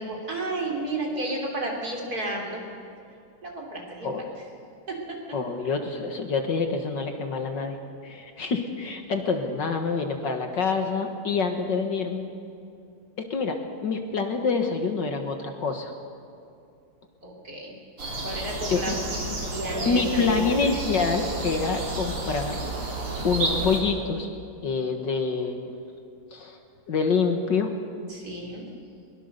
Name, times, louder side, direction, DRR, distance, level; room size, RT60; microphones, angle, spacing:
voice 1, 0.0-2.6 3.4-4.4 4.9-5.4 17.2-17.8 18.2-20.5 28.1-28.7, right 1 dB, 45° right, 0 dB, 3.7 m, -32 dB
voice 2, 5.3-7.8 8.0-12.3 13.3-15.9 18.7-19.0 19.7-22.6 22.9-23.0 23.2-24.3 24.6-25.7 26.3-26.6 26.9-27.7, left 4 dB, 60° left, 5 dB, 2.0 m, -26 dB
sound 1, 18.0-23.8, right 3 dB, 80° right, 4.6 m, -31 dB
22.0 x 21.5 x 6.7 m, 2.5 s
omnidirectional pair, 2.4 m